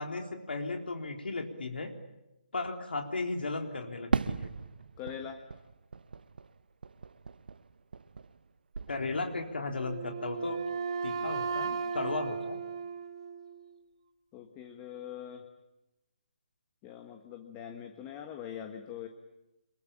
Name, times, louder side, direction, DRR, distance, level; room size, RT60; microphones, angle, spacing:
voice 1, 0.0-1.9 2.5-4.5 8.9-10.6 11.0-12.6, left 3 dB, 85° left, 3 dB, 3.9 m, -35 dB
Fireworks, 4.1-8.5 8.7-9.5, right 4 dB, 70° right, 1.1 m, -37 dB
voice 2, 5.0-5.4 14.3-15.5 16.8-19.1, left 9 dB, 15° left, 5 dB, 1.4 m, -43 dB
Wind instrument woodwind instrument, 9.8-13.7, right 5 dB, 35° right, 2.3 m, -35 dB
26.5 x 22.5 x 8.8 m, 0.94 s
hypercardioid pair, 170°, 5 cm